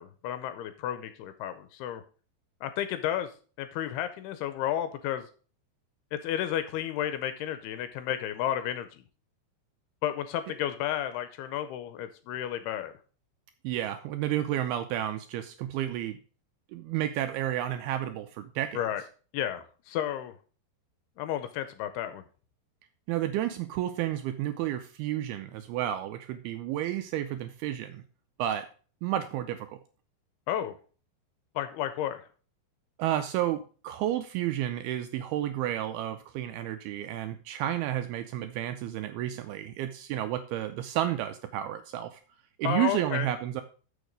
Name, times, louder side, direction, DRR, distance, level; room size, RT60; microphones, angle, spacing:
voice 1, 0.0-2.0 2.6-3.3 3.6-5.3 6.1-9.0 10.0-12.9 18.7-19.0 19.3-20.3 21.2-22.2 30.5-30.7 31.6-32.3 42.6-43.3, left 11 dB, 80° left, 11 dB, 2.4 m, -32 dB
voice 2, 13.6-16.2 16.7-18.8 23.1-28.0 28.4-28.7 29.0-29.8 33.0-42.2 42.6-43.6, right 12 dB, 85° right, 8 dB, 2.2 m, -31 dB
7.0 x 6.4 x 5.1 m, 0.39 s
omnidirectional pair, 4.9 m